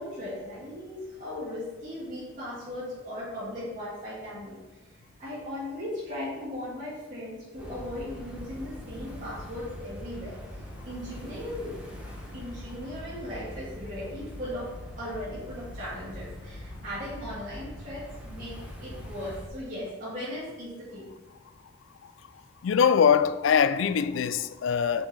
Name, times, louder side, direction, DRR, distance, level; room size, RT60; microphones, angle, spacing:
voice 1, 0.0-11.7 12.3-21.1, left 1 dB, 40° right, 1.8 m, -38 dB
sound 1, 7.6-19.5, left 1 dB, 5° right, 0.9 m, -42 dB
voice 2, 22.6-25.1, left 7 dB, 75° left, 0.3 m, -23 dB
6.0 x 4.8 x 4.1 m
head